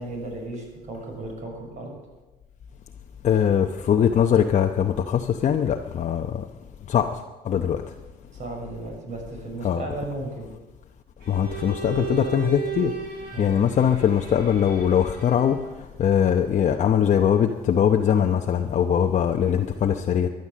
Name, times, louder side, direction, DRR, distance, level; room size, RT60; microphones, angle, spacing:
voice 1, 0.0-1.9 8.3-10.5 13.3-13.6, right 2 dB, 45° right, 1 dB, 6.3 m, -35 dB
voice 2, 3.2-6.4 6.9-7.1 7.5-7.8 9.6-9.9 11.3-12.9 13.4-15.6 16.0-20.3, left 8 dB, 45° left, 4 dB, 0.8 m, -21 dB
Bowed string instrument, 11.2-15.7, right 8 dB, 70° right, 6.2 m, -36 dB
13.5 x 11.0 x 7.6 m, 1.2 s
cardioid pair, 110°, 17 cm